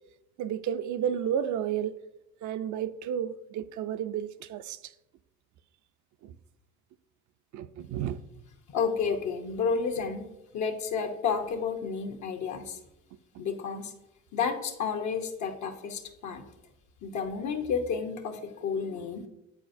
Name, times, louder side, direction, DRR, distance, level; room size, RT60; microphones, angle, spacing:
voice 1, 0.4-2.0 2.4-4.9 6.2-6.4 7.5-8.2, right 9 dB, 75° right, 0.5 m, -32 dB
voice 2, 8.7-10.2 10.5-12.8 13.4-13.9 14.3-16.5 17.0-19.3, left 6 dB, 75° left, 0.9 m, -31 dB
9.1 x 4.1 x 2.6 m
cardioid pair, 90°, 30 cm